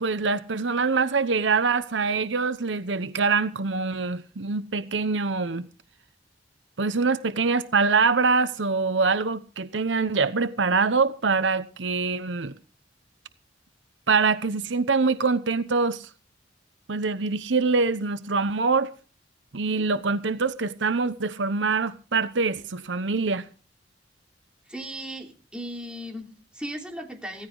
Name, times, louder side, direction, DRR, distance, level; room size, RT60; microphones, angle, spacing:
voice 1, 0.0-5.7 6.8-12.5 14.1-16.1 16.9-18.9 19.5-23.4, right 4 dB, 90° right, 0.9 m, -24 dB
voice 2, 24.7-27.5, equal, 5° right, 3.1 m, -37 dB
16.0 x 14.5 x 3.9 m
head